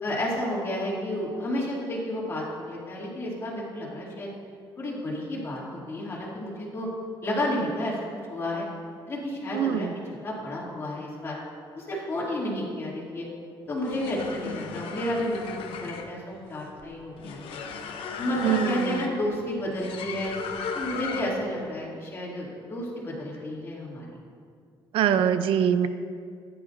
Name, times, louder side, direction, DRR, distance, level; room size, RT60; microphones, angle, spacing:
voice 1, 0.0-4.3 4.8-6.9 7.2-7.9 8.3-8.7 9.1-11.4 11.7-13.3 13.7-15.6 15.8-17.6 18.2-20.3 20.7-24.1, left 1 dB, 25° left, -5 dB, 2.6 m, -31 dB
voice 2, 9.5-9.9 18.4-19.0 24.9-25.9, right 9 dB, 75° right, 11 dB, 0.5 m, -23 dB
sound 1, 13.7-21.5, left 5 dB, 75° left, 0.8 m, -36 dB
15.0 x 10.0 x 2.6 m, 2.2 s
cardioid pair, 165°, 9 cm